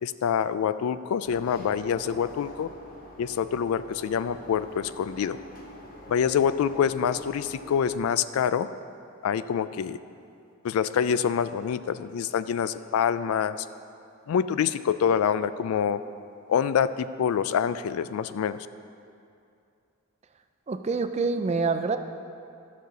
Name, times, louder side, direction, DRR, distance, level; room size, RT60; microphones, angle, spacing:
voice 1, 0.0-2.7 3.2-5.4 6.1-8.7 9.2-10.0 10.6-13.7 14.3-16.0 16.5-18.7, left 7 dB, 75° left, 14 dB, 0.3 m, -26 dB
sound 1, 1.2-8.0, left 1 dB, 40° left, 1.0 m, -45 dB
voice 2, 20.7-22.0, right 4 dB, 30° right, 8 dB, 0.4 m, -26 dB
11.5 x 6.4 x 3.9 m, 2.5 s
head